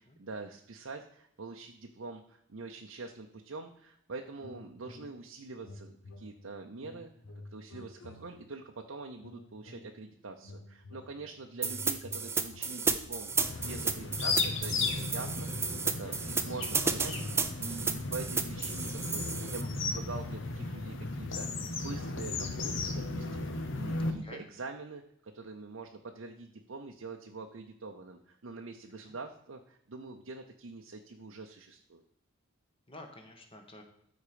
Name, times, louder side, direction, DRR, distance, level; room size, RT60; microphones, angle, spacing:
voice 1, 0.2-7.1 7.5-15.5 15.8-21.5 21.7-32.0, right 3 dB, 65° right, 3 dB, 0.7 m, -44 dB
sound 1, 4.4-5.3 5.6-8.7 9.2-10.1 10.4-13.5 14.0-19.3, left 2 dB, 90° left, 1.1 m, -51 dB
sound 2, 11.6-19.6, right 5 dB, 10° right, 0.5 m, -32 dB
sound 3, 13.3-24.1, left 3 dB, 60° left, 1.1 m, -35 dB
voice 2, 16.0-16.3 24.0-24.4 29.0-29.1 32.9-33.8, left 1 dB, 25° left, 4 dB, 1.3 m, -50 dB
13.0 x 4.4 x 5.0 m, 0.73 s
head